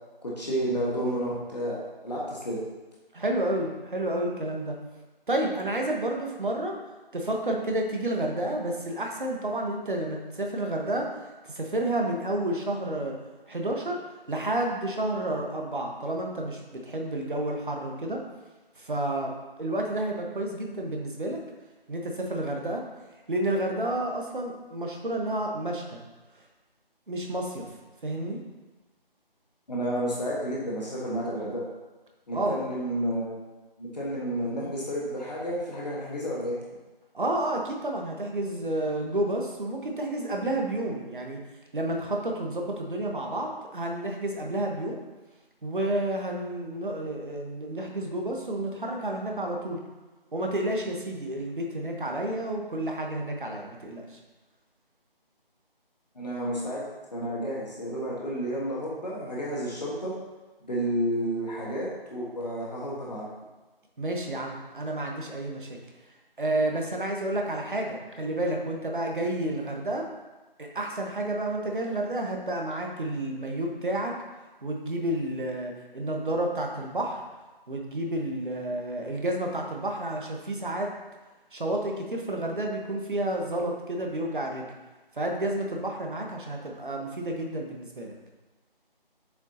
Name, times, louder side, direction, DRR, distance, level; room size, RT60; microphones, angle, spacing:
voice 1, 0.2-1.8 2.0-2.6 29.7-31.6 32.3-33.4 33.8-36.6 56.1-56.8 57.1-60.1 60.7-63.3, equal, 45° left, -6 dB, 1.5 m, -31 dB
voice 2, 3.1-4.8 5.3-6.8 7.1-11.1 11.4-13.2 13.5-14.0 14.3-18.2 18.8-19.3 19.6-21.4 21.9-22.8 23.3-26.0 27.1-27.6 28.0-28.4 32.3-32.6 37.1-41.4 41.7-45.0 45.6-49.8 50.3-54.2 64.0-65.7 66.4-70.1 70.6-74.2 74.6-77.2 77.7-80.9 81.5-84.7 85.1-88.1, right 1 dB, 60° right, 1 dB, 1.3 m, -30 dB
7.2 x 6.4 x 2.8 m, 1.2 s
figure-of-eight pair, 160°, 29 cm